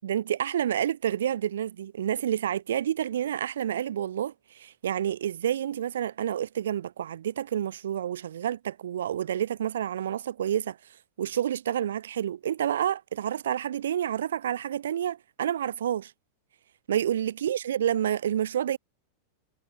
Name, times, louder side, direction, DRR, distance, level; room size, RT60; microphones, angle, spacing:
voice 1, 0.0-10.8 11.2-16.1 16.9-18.8, right 10 dB, 65° right, 0.9 m, -29 dB
figure-of-eight pair, 90°, 0 cm